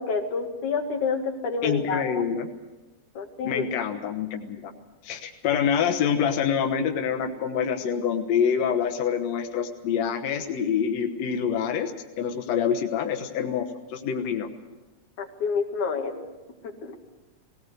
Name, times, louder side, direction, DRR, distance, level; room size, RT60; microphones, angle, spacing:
voice 1, 0.0-2.0 3.1-3.6 15.2-16.1 16.8-16.9, left 5 dB, 90° left, 2 dB, 3.4 m, -28 dB
voice 2, 1.6-2.5 3.4-4.7 5.0-11.9 12.2-14.5, left 7 dB, 70° left, 4 dB, 2.3 m, -26 dB
19.0 x 18.5 x 8.0 m, 1.1 s
omnidirectional pair, 3.3 m